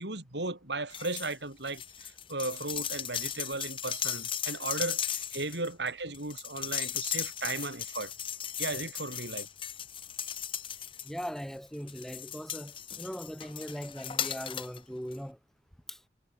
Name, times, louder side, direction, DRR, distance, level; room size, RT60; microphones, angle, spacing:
voice 1, 0.0-8.1 8.6-9.5, right 2 dB, 70° right, 5.6 m, -36 dB
sound 1, 0.9-1.3 1.6-11.4 11.9-14.8 15.1-15.2, left 9 dB, 30° left, 0.6 m, -37 dB
voice 2, 11.1-15.4 15.9-16.0, equal, ahead, 3.9 m, -40 dB
head